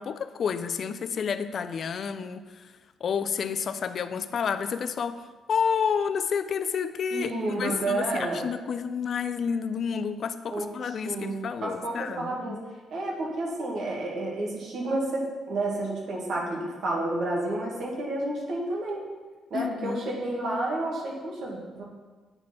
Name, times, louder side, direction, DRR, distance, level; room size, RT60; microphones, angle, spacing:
voice 1, 0.0-2.7 3.0-12.6 19.5-20.0, left 6 dB, 55° left, 11 dB, 0.4 m, -30 dB
voice 2, 7.1-8.5 10.5-10.7 11.1-12.6 12.9-19.0 19.5-21.8, right 2 dB, 65° right, -2 dB, 1.8 m, -30 dB
8.9 x 4.2 x 4.4 m, 1.3 s
cardioid pair, 90°, 0 cm